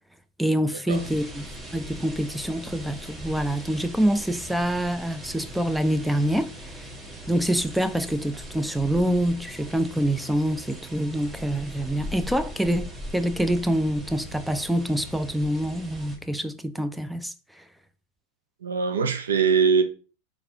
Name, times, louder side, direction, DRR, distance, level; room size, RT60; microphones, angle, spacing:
voice 1, 0.4-1.5 1.7-6.9 7.3-17.6, right 1 dB, 5° right, 0.3 m, -26 dB
sound 1, 0.9-16.2, equal, 20° right, 1.1 m, -40 dB
voice 2, 18.6-19.8, right 6 dB, 85° right, 0.6 m, -22 dB
4.0 x 3.4 x 2.7 m
hypercardioid pair, 105°, 0 cm